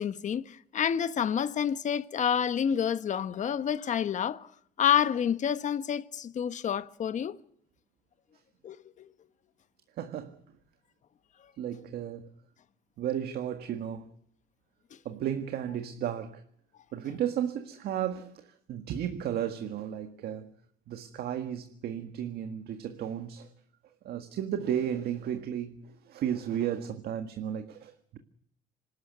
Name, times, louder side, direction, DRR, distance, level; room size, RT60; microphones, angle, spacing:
voice 1, 0.0-4.5 4.8-7.4 8.6-9.1, left 8 dB, 45° left, 1.1 m, -28 dB
voice 2, 9.9-10.6 11.6-12.3 13.0-14.1 15.1-16.4 16.9-20.5 20.9-23.5 23.8-28.2, right 10 dB, 70° right, 1.7 m, -34 dB
26.5 x 12.5 x 9.4 m
cardioid pair, 110°, 17 cm